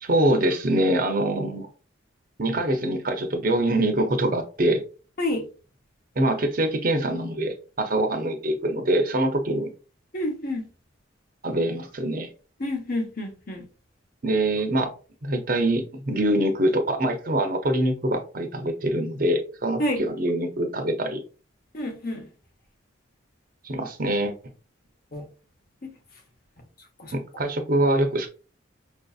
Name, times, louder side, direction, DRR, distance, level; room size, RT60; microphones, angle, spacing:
voice 1, 0.0-1.7 2.4-4.8 6.2-9.7 11.4-12.3 14.2-14.9 15.2-21.2 23.6-24.3 27.1-28.3, right 1 dB, 45° right, 0.6 m, -24 dB
voice 2, 10.1-10.6 12.6-13.6 19.8-20.0 21.7-22.3 25.1-25.2 25.8-25.9 27.0-27.1, left 1 dB, 45° left, 0.8 m, -28 dB
5.4 x 2.6 x 2.3 m
head